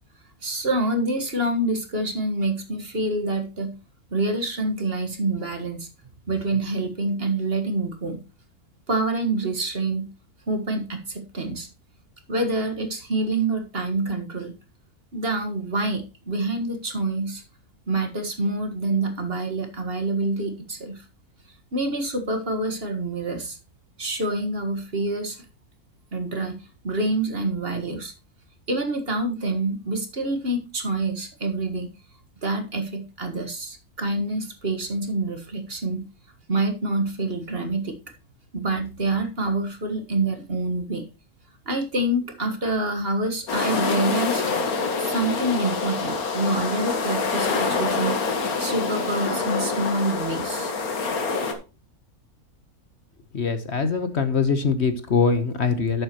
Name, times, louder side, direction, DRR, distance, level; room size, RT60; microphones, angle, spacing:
voice 1, 0.4-3.8 4.1-5.9 6.3-8.2 8.9-10.1 10.5-11.7 12.3-14.5 15.1-17.4 17.9-21.1 21.7-23.6 24.0-25.4 26.1-28.1 28.7-31.9 32.4-36.1 36.5-38.0 38.5-41.1 41.7-44.4 45.0-48.2 48.6-50.7, right 2 dB, 40° right, 6 dB, 1.7 m, -26 dB
sound 1, 43.5-51.5, left 4 dB, 75° left, 2.0 m, -26 dB
voice 2, 53.3-56.0, left 5 dB, 50° left, 9 dB, 1.3 m, -23 dB
11.5 x 8.0 x 3.0 m, 0.31 s
omnidirectional pair, 1.6 m